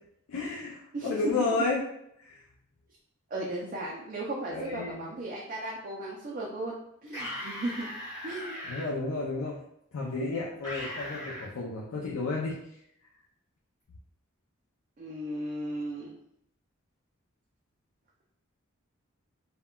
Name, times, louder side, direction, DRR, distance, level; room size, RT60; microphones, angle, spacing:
voice 1, 0.3-1.8 2.2-2.4 4.5-5.1 8.7-9.6 9.9-12.5, left 3 dB, 80° left, -4 dB, 0.4 m, -32 dB
voice 2, 0.9-1.3 3.3-6.8 7.0-7.9 8.2-8.6 15.0-16.1, right 1 dB, 40° right, -3 dB, 0.3 m, -35 dB
sound 1, 7.1-8.9 10.6-11.5, left 1 dB, 15° left, 1.1 m, -38 dB
3.6 x 2.2 x 2.2 m, 0.75 s
head